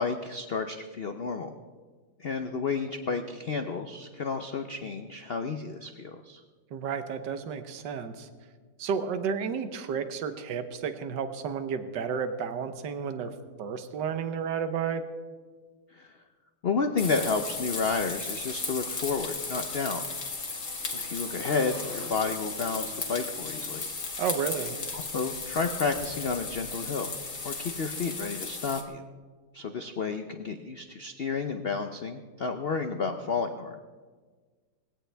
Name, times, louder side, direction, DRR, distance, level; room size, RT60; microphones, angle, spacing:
voice 1, 0.0-1.5 2.2-6.4 15.9-16.1 16.6-20.0 20.9-23.9 24.9-27.1 27.4-29.0 29.5-33.8, left 4 dB, 75° left, 7 dB, 0.5 m, -31 dB
voice 2, 6.7-8.3 8.8-13.3 13.6-15.0 24.2-24.8, right 6 dB, 70° right, 9 dB, 1.6 m, -32 dB
sound 1, 17.0-28.8, left 4 dB, 45° left, 1.7 m, -35 dB
Motorcycle / Engine, 18.5-25.0, right 1 dB, 40° right, 3.1 m, -49 dB
20.0 x 16.5 x 3.4 m, 1.5 s
omnidirectional pair, 2.0 m